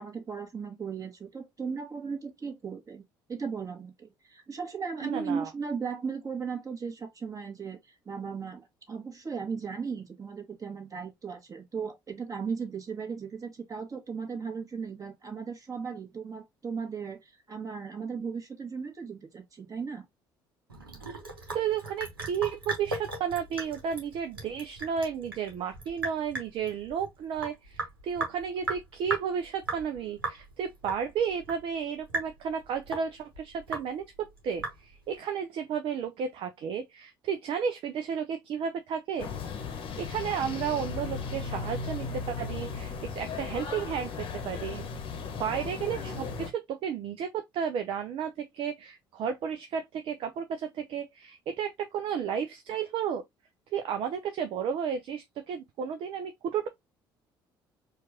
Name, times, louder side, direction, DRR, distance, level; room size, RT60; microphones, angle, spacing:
voice 1, 0.0-3.0 3.3-20.0, right 5 dB, 30° right, 1.5 m, -36 dB
voice 2, 5.0-5.5 21.5-39.3 40.0-44.8 45.4-53.2 53.7-56.7, right 7 dB, 50° right, 0.5 m, -33 dB
Sink (filling or washing) / Drip, 20.7-35.2, right 2 dB, 85° right, 0.9 m, -38 dB
sound 1, 39.2-46.5, left 5 dB, 50° left, 0.9 m, -36 dB
4.5 x 2.4 x 2.8 m
figure-of-eight pair, 55°, 12 cm